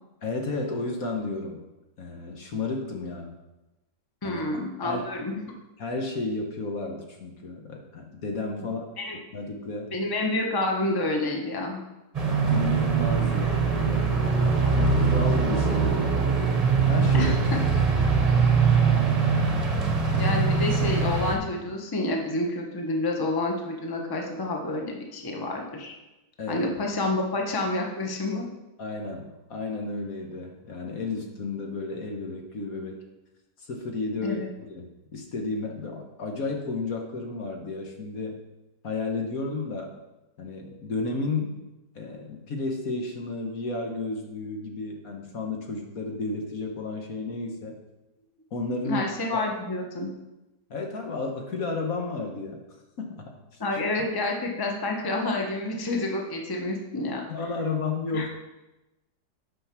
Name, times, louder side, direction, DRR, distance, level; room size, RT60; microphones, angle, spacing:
voice 1, 0.2-1.6 2.0-3.3 4.2-4.4 4.8-5.0 5.8-8.8 9.3-10.0 12.5-14.1 15.0-17.4 18.0-18.2 26.4-26.7 28.8-33.0 33.6-38.4 38.8-39.9 40.4-41.7 41.9-47.8 48.5-49.1 49.3-49.4 50.7-52.6 53.0-53.6 57.3-58.3, left 3 dB, 55° left, 2 dB, 1.5 m, -32 dB
voice 2, 4.2-5.4 8.6-8.7 9.0-9.2 9.9-11.8 17.1-17.4 20.1-25.9 26.5-28.5 34.2-34.5 48.8-50.1 53.6-57.5 58.1-58.3, left 2 dB, 15° left, 1 dB, 1.0 m, -29 dB
sound 1, 12.1-21.4, right 5 dB, 25° right, 1.1 m, -22 dB
9.2 x 5.8 x 6.0 m, 1.0 s
omnidirectional pair, 1.9 m